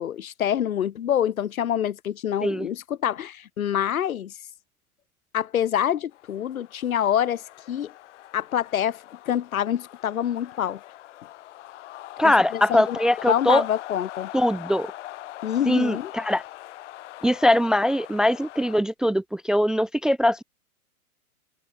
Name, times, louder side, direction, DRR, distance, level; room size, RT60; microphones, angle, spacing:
voice 1, 0.0-4.3 5.3-7.9 8.3-10.8 12.2-13.0 13.3-14.3 15.4-16.1, left 10 dB, 65° left, 1.8 m, -26 dB
sound 1, 6.1-18.8, left 15 dB, 50° left, 6.2 m, -42 dB
voice 2, 12.2-13.6 14.3-14.9 15.7-16.4 17.2-20.4, left 1 dB, ahead, 0.5 m, -21 dB
hypercardioid pair, 120°, 45 cm